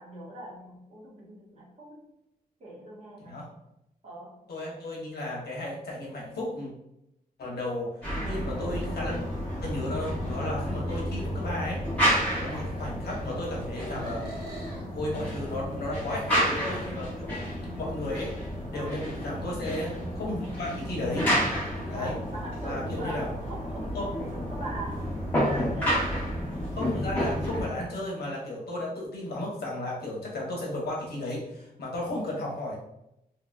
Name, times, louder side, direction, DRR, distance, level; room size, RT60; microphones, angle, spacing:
voice 1, 0.0-2.0 2.6-3.4 4.0-4.4 15.1-15.6 18.7-19.1 21.9-25.1 25.4-25.9, right 1 dB, 45° right, -6 dB, 1.2 m, -42 dB
voice 2, 4.5-6.7 7.4-7.9 8.2-9.2 9.6-11.9 12.4-14.3 14.6-17.3 17.8-18.4 18.7-21.3 21.9-22.1 22.6-23.3 23.9-24.0 26.7-32.8, left 1 dB, 85° left, -3 dB, 1.0 m, -34 dB
sound 1, 8.0-27.7, equal, 10° left, 1.3 m, -31 dB
sound 2, 9.9-11.0 12.4-12.6 14.0-14.8, right 1 dB, 75° right, 1.0 m, -44 dB
2.9 x 2.9 x 2.3 m, 0.83 s
wide cardioid pair, 150°, 16 cm